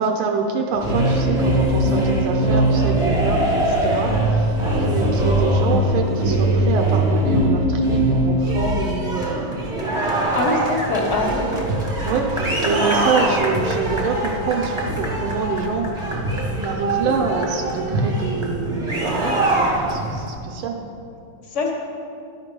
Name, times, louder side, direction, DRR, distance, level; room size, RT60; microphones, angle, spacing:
voice 1, 0.0-9.6 11.0-11.8 12.0-16.1 16.6-20.8, right 5 dB, 85° right, 2 dB, 1.5 m, -26 dB
sound 1, 0.7-20.3, right 1 dB, 20° right, 0.8 m, -21 dB
voice 2, 10.1-11.6 21.4-21.7, left 2 dB, 40° left, 1 dB, 1.2 m, -24 dB
11.5 x 4.4 x 5.2 m, 2.6 s
omnidirectional pair, 2.2 m